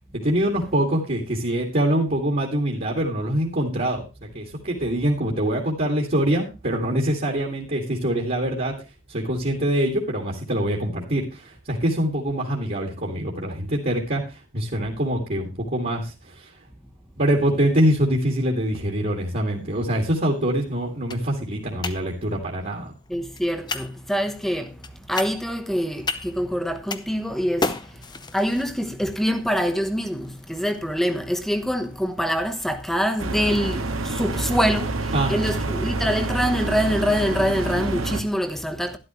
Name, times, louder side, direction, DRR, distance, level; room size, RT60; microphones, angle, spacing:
voice 1, 0.1-8.8 9.1-16.5 17.2-22.9 35.1-35.4, right 1 dB, 45° right, 2.2 m, -24 dB
sound 1, 19.2-37.1, left 3 dB, 20° left, 0.7 m, -38 dB
voice 2, 23.1-24.7 25.1-27.7 28.3-34.9 35.3-39.0, equal, ahead, 1.1 m, -25 dB
sound 2, 33.2-38.2, right 2 dB, 80° right, 1.7 m, -27 dB
12.0 x 11.5 x 3.1 m
head